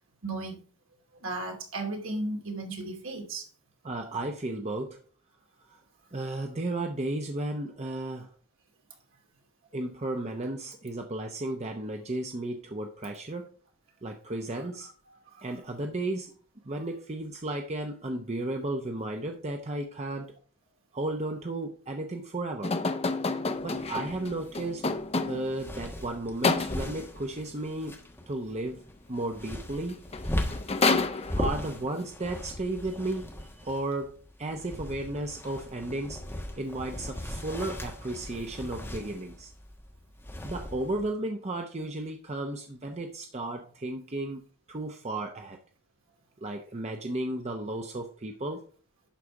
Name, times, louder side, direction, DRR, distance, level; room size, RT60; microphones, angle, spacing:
voice 1, 0.2-0.6 1.2-3.5 15.4-15.5, right 2 dB, 60° right, 2.7 m, -35 dB
voice 2, 3.8-5.0 5.7-5.8 6.1-8.3 9.7-13.5 14.0-14.9 15.4-16.4 16.6-20.3 20.9-22.8 23.6-25.0 25.3-28.0 28.3-28.8 29.1-30.0 31.4-33.3 33.6-39.5 40.4-44.4 44.7-45.6 46.4-48.6, right 2 dB, 30° right, 0.7 m, -34 dB
sound 1, 22.6-25.6 26.4-27.1 29.7-29.8 30.1-31.7, left 3 dB, 25° left, 0.6 m, -29 dB
sound 2, 23.5-41.1, left 1 dB, 10° left, 1.3 m, -39 dB
11.5 x 4.2 x 4.7 m
head